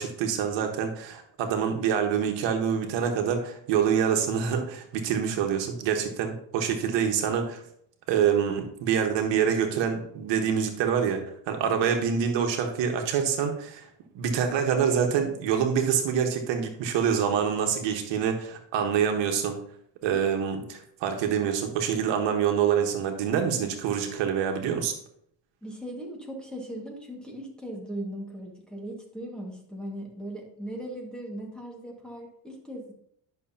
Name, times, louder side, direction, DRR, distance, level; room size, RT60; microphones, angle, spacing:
voice 1, 0.0-7.6 8.1-13.9 14.1-19.6 20.0-24.9, right 7 dB, 80° right, 4 dB, 1.4 m, -26 dB
voice 2, 25.6-32.9, right 1 dB, ahead, -1 dB, 1.8 m, -38 dB
11.0 x 6.3 x 2.8 m, 0.68 s
cardioid pair, 140°, 44 cm